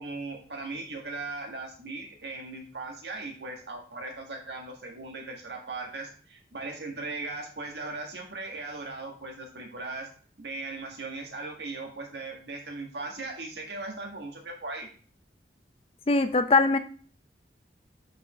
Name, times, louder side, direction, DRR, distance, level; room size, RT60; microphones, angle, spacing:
voice 1, 0.0-10.1 10.4-14.9, right 3 dB, 80° right, 1 dB, 1.7 m, -38 dB
voice 2, 16.1-16.8, left 3 dB, 30° left, 9 dB, 0.5 m, -21 dB
5.3 x 5.2 x 4.3 m, 0.42 s
head